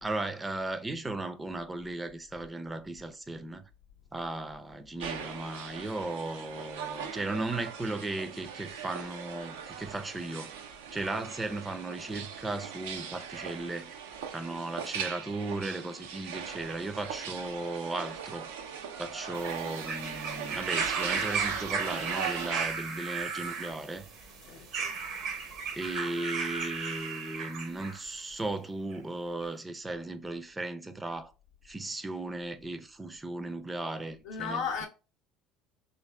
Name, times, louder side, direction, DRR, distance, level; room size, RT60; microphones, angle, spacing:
voice 1, 0.0-3.6 4.1-10.5 10.9-13.9 14.3-18.5 19.0-24.1 25.7-31.3 31.6-34.9, right 2 dB, 15° right, 0.4 m, -36 dB
sound 1, 5.0-22.7, right 8 dB, 85° right, 0.4 m, -40 dB
sound 2, 19.3-28.0 28.9-29.0, right 5 dB, 65° right, 0.9 m, -35 dB
voice 2, 24.4-24.9 34.2-34.9, left 6 dB, 75° left, 0.6 m, -35 dB
3.2 x 2.6 x 3.2 m
hypercardioid pair, 75°, 0 cm